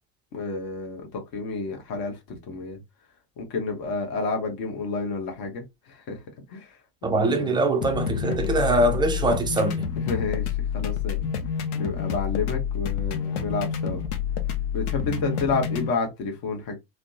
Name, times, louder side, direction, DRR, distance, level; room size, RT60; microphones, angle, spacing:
voice 1, 0.3-2.8 3.4-6.2 6.5-6.8 7.1-7.6 10.0-11.3 11.7-14.0 14.7-16.8, left 4 dB, 45° left, 1.2 m, -30 dB
voice 2, 7.0-9.9, right 2 dB, 10° right, 0.4 m, -23 dB
sound 1, 7.8-15.9, left 8 dB, 70° left, 0.7 m, -28 dB
3.2 x 2.0 x 2.7 m
figure-of-eight pair, 70°, 47 cm